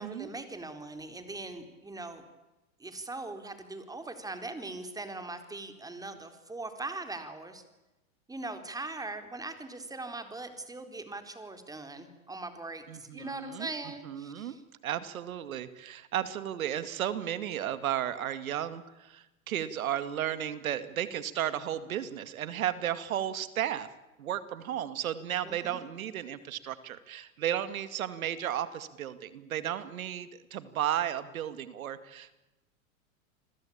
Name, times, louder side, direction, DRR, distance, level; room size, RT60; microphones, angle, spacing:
voice 1, 0.0-2.2 2.8-7.6 8.3-14.6 25.4-25.8, right 2 dB, 10° right, 8 dB, 4.0 m, -41 dB
voice 2, 12.9-13.7 14.0-14.6 14.8-23.9 24.2-32.4, right 11 dB, 80° right, 13 dB, 2.3 m, -34 dB
29.0 x 21.5 x 8.8 m, 1.0 s
hypercardioid pair, 115°, 41 cm